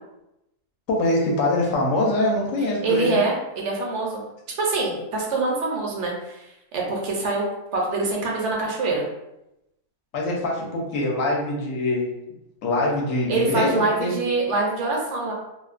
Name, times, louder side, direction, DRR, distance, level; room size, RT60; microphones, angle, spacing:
voice 1, 0.9-3.2 10.1-12.1 12.6-14.1, left 2 dB, 80° left, -2 dB, 1.0 m, -23 dB
voice 2, 2.8-4.2 4.6-6.4 6.7-7.4 7.7-9.0 13.3-15.3, right 3 dB, 70° right, -2 dB, 0.9 m, -24 dB
2.5 x 2.1 x 2.4 m, 0.89 s
omnidirectional pair, 1.4 m